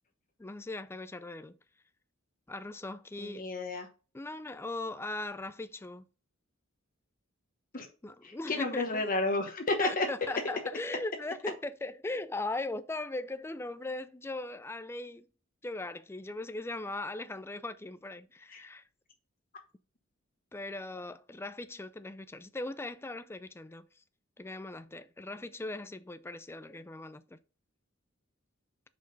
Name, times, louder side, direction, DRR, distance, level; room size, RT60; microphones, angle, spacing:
voice 1, 0.4-1.6 2.5-3.4 4.1-6.1 8.0-9.0 9.8-15.3 15.6-18.8 20.5-23.8 24.4-27.2, left 2 dB, 10° left, 0.4 m, -39 dB
voice 2, 3.2-3.9 7.7-7.9 8.2-10.1 18.5-18.6, left 2 dB, 45° left, 1.1 m, -31 dB
6.2 x 5.3 x 3.9 m
head